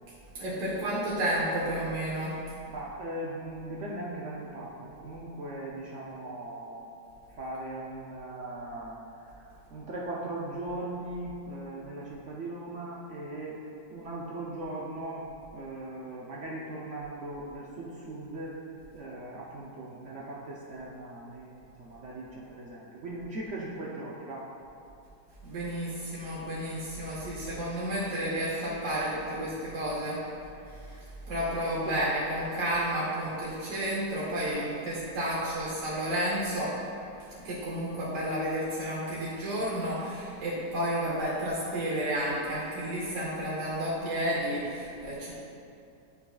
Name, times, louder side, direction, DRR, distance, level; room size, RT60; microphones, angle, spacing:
voice 1, 0.3-2.4 25.4-30.2 30.7-36.8 37.4-45.3, right 1 dB, 50° right, -7 dB, 1.1 m, -31 dB
voice 2, 2.7-6.9 7.4-9.0 9.4-13.6 13.9-15.3 15.5-18.6 18.9-24.5 31.8-32.0, right 1 dB, 70° right, -5 dB, 0.7 m, -39 dB
9.3 x 5.6 x 2.3 m, 2.6 s
omnidirectional pair, 2.0 m